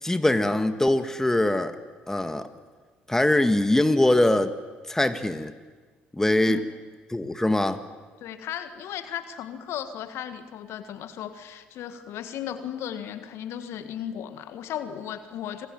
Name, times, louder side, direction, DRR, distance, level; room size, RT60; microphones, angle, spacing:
voice 1, 0.0-1.8 2.1-2.5 3.1-4.5 4.9-5.5 6.1-6.6 7.1-7.8, left 1 dB, 10° left, 9 dB, 1.8 m, -22 dB
voice 2, 8.2-15.7, left 10 dB, 60° left, 10 dB, 1.7 m, -35 dB
27.0 x 20.0 x 9.1 m, 1.4 s
hypercardioid pair, 55°, 5 cm